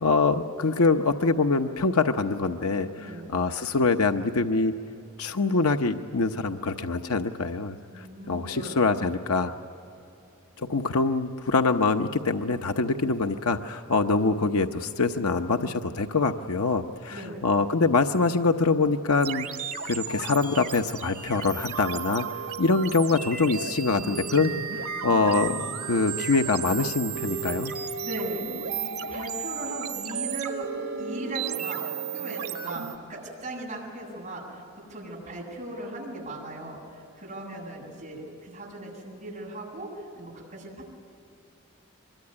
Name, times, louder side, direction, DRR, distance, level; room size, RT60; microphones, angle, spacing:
voice 1, 0.0-4.7 5.2-9.5 10.6-19.5 19.8-22.3 22.6-27.7, left 3 dB, 90° left, 6 dB, 0.9 m, -24 dB
voice 2, 3.0-3.3 7.9-8.8 17.1-17.4 28.0-28.5 28.7-30.7 31.0-34.6 34.9-41.0, right 1 dB, 30° right, -4 dB, 7.7 m, -38 dB
sound 1, 19.2-33.0, right 7 dB, 90° right, 1.5 m, -34 dB
25.5 x 22.5 x 9.7 m, 2.8 s
head